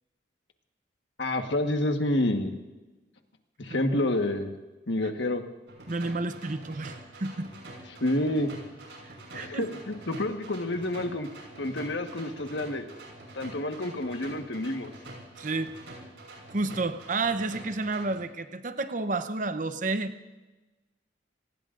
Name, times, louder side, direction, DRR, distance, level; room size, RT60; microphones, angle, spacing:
voice 1, 1.2-2.5 3.6-4.5 4.9-5.4 8.0-8.5 9.3-11.3 11.6-12.9 13.3-14.9, left 1 dB, 80° left, 5 dB, 1.4 m, -28 dB
sound 1, 5.7-18.2, right 1 dB, 85° right, 6.1 m, -46 dB
voice 2, 5.9-7.5 9.0-9.7 15.4-15.7 16.5-20.1, right 3 dB, 45° right, 9 dB, 0.8 m, -31 dB
27.0 x 19.0 x 2.6 m, 1.2 s
head